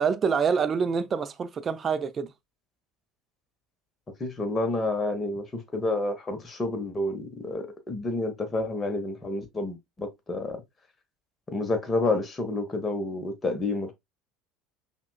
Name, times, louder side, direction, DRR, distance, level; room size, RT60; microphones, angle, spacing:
voice 1, 0.0-2.3, right 6 dB, 35° right, 0.5 m, -26 dB
voice 2, 4.2-10.6 11.5-13.9, left 2 dB, 25° left, 1.0 m, -29 dB
5.6 x 2.3 x 2.2 m
figure-of-eight pair, 70°, 0 cm